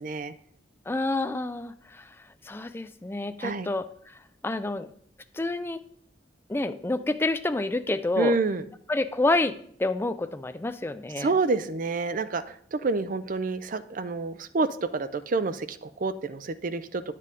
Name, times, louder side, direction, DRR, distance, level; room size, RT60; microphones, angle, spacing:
voice 1, 0.0-0.3 3.4-3.7 8.2-8.6 11.2-12.4 12.7-17.0, right 3 dB, 50° right, 13 dB, 0.5 m, -28 dB
voice 2, 0.9-2.1 2.5-3.9 4.4-4.9 5.3-5.8 6.5-8.4 8.9-9.5 9.8-11.3, left 2 dB, 15° left, 10 dB, 0.4 m, -28 dB
9.6 x 7.5 x 3.8 m, 0.63 s
head